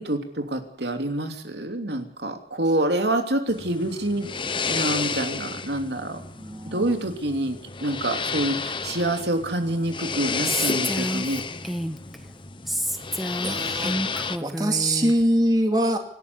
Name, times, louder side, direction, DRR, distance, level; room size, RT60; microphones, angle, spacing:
voice 1, 0.0-6.2 6.7-11.4, right 1 dB, 70° right, 6 dB, 3.0 m, -27 dB
sound 1, 3.5-14.4, left 5 dB, 30° left, 1.1 m, -31 dB
voice 2, 6.4-7.0 10.7-10.8 13.4-13.9 14.4-16.0, right 1 dB, 20° right, 4 dB, 2.5 m, -23 dB
Female speech woman speaking, 10.4-12.2 12.7-15.2, equal, ahead, 1.6 m, -29 dB
26.5 x 12.5 x 9.7 m, 0.64 s
head